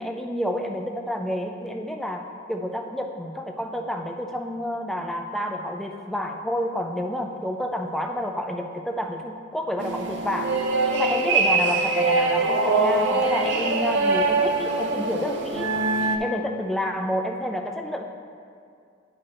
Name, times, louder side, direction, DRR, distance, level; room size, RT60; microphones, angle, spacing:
voice 1, 0.0-2.2 2.5-10.5 10.9-15.7 16.2-18.0, equal, ahead, 3 dB, 0.3 m, -29 dB
sound 1, 9.8-16.2, right 3 dB, 60° right, 0.5 m, -23 dB
11.0 x 4.9 x 2.9 m, 2.3 s
head